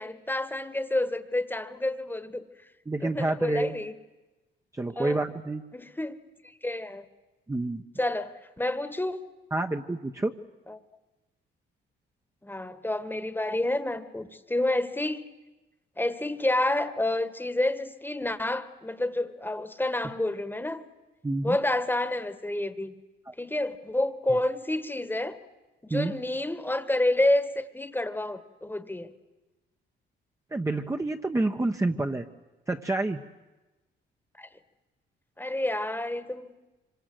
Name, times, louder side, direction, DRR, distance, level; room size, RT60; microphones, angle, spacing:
voice 1, 0.0-2.4 3.0-3.9 5.0-5.2 5.7-6.1 6.6-7.0 8.0-9.2 10.7-10.8 12.4-15.2 16.0-20.8 21.4-22.9 23.4-25.4 25.8-29.1 34.4-34.5 35.4-36.5, left 1 dB, 10° left, 12 dB, 1.5 m, -29 dB
voice 2, 2.9-3.7 4.7-5.6 7.5-7.8 9.5-10.3 21.2-21.6 23.3-23.4 24.3-24.4 25.9-26.1 30.5-32.2 32.7-33.2, right 2 dB, 15° right, 3 dB, 1.1 m, -28 dB
25.5 x 25.0 x 7.9 m, 1.1 s
cardioid pair, 90°, 20 cm